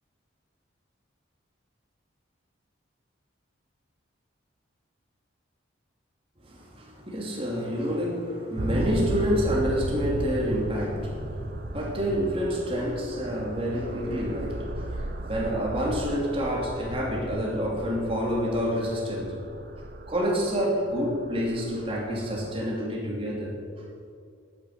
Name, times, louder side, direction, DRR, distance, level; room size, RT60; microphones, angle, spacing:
voice 1, 6.4-11.5 11.7-19.4 20.1-23.6, equal, 30° right, -3 dB, 2.6 m, -28 dB
sound 1, 8.6-22.5, right 1 dB, 45° right, 0.9 m, -35 dB
11.0 x 9.2 x 6.6 m, 2.3 s
head